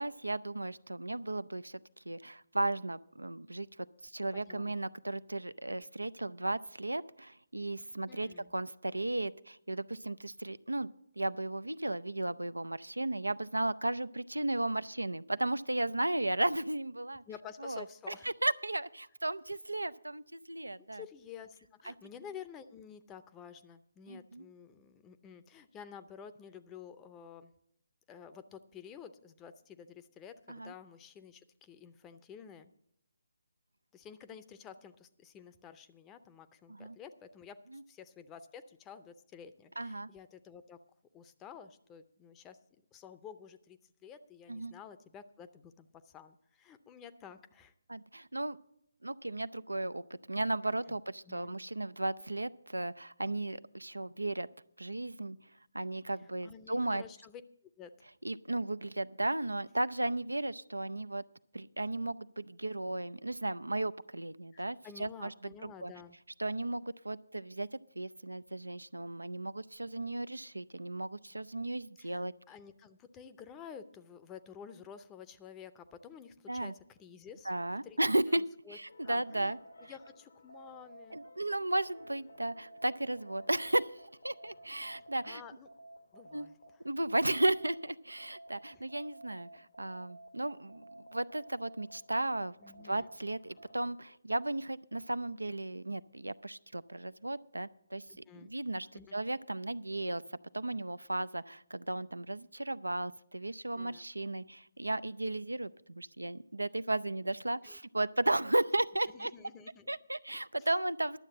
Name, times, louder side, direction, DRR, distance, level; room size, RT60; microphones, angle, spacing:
voice 1, 0.0-1.8 2.1-10.9 11.2-17.2 17.6-17.8 18.4-21.0 21.9-22.0 24.1-24.4 30.5-30.7 36.7-37.0 37.7-37.8 39.8-40.1 44.5-44.7 47.9-48.6 49.0-54.5 54.8-55.4 55.7-57.0 58.2-61.2 61.5-65.3 65.6-65.9 66.4-72.3 76.5-76.7 77.5-78.4 78.7-79.6 81.1-83.9 84.2-85.4 86.3-86.5 86.8-98.0 98.4-98.9 99.1-100.2 100.5-109.3 109.9-111.2, right 2 dB, 90° right, 16 dB, 0.4 m, -35 dB
voice 2, 4.5-4.8 8.1-8.5 17.3-18.3 20.8-27.5 28.1-32.7 33.9-37.6 37.9-40.8 41.1-42.6 42.9-47.7 50.9-51.0 51.3-51.6 56.4-57.4 57.8-58.0 64.5-66.2 72.0-77.5 77.8-78.0 78.3-78.8 79.0-81.2 85.0-85.7 86.1-86.8 88.7-88.8 92.6-93.1 98.1-98.5 98.9-99.2 103.7-104.0 107.6-107.8 109.1-109.9 110.6-110.7, left 7 dB, 15° left, 11 dB, 0.6 m, -51 dB
sound 1, 78.9-87.8 88.2-94.2, right 1 dB, 70° left, 1.0 m, -54 dB
11.5 x 7.4 x 7.6 m, 0.75 s
figure-of-eight pair, 145°, 0 cm